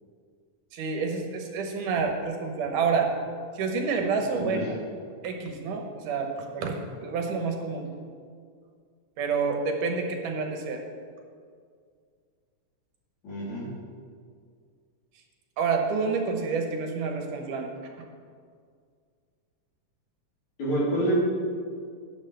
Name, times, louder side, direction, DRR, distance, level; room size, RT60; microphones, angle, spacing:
voice 1, 0.7-3.1 3.5-4.8 5.2-7.9 9.2-10.8 15.6-17.7, right 5 dB, 80° right, 3 dB, 2.6 m, -28 dB
voice 2, 13.2-13.7 20.6-21.1, right 1 dB, 65° left, -8 dB, 4.8 m, -27 dB
13.5 x 10.0 x 3.4 m, 2.1 s
omnidirectional pair, 3.6 m